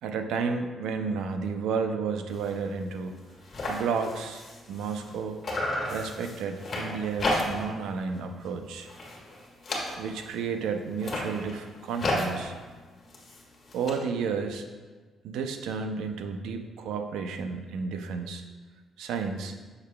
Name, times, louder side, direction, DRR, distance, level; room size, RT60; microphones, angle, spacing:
voice 1, 0.0-3.1 3.7-5.4 5.9-8.9 10.0-12.5 13.7-14.7 15.2-18.4 19.0-19.6, right 5 dB, 85° right, 6 dB, 0.5 m, -32 dB
sound 1, 2.3-2.5 2.9-3.0 3.2-5.2 5.4-7.8 8.1-8.5 8.8-10.3 10.9-13.9, left 1 dB, 40° left, 1.6 m, -33 dB
6.7 x 6.6 x 2.2 m, 1.4 s
cardioid pair, 90°, 0 cm